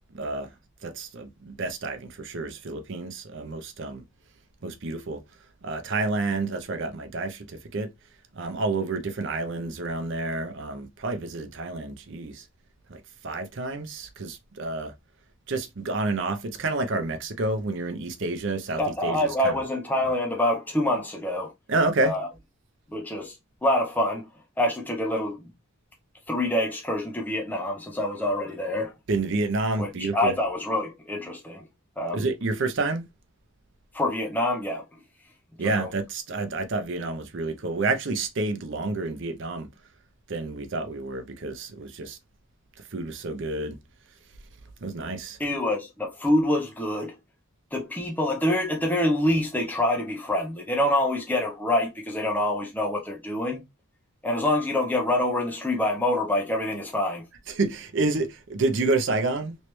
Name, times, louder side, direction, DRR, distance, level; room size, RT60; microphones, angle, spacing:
voice 1, 0.1-0.5 0.8-4.0 4.6-5.2 5.6-7.9 8.3-12.4 12.9-14.9 15.5-19.5 21.7-22.1 29.1-30.4 32.1-33.0 35.6-39.7 40.3-42.2 42.9-43.8 44.8-45.4 57.5-59.6, right 3 dB, 55° right, 0.6 m, -29 dB
voice 2, 18.8-21.5 22.0-22.3 22.9-23.4 23.6-24.3 24.6-25.5 26.3-28.9 29.8-31.6 32.0-32.2 33.9-34.8 35.6-35.9 45.4-47.1 47.7-53.6 54.2-57.2, left 1 dB, 5° left, 0.5 m, -26 dB
3.1 x 3.1 x 3.0 m
head